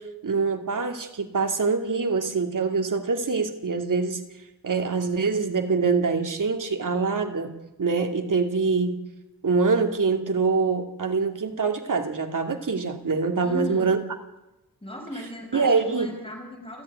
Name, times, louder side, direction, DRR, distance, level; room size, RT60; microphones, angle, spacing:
voice 1, 0.0-4.2 4.6-7.5 7.8-9.0 9.4-14.0 15.5-16.1, right 4 dB, 60° right, 5 dB, 2.6 m, -24 dB
voice 2, 13.4-14.0 14.8-16.8, equal, 15° left, 2 dB, 5.4 m, -37 dB
29.5 x 11.0 x 9.6 m, 0.98 s
wide cardioid pair, 135°, 36 cm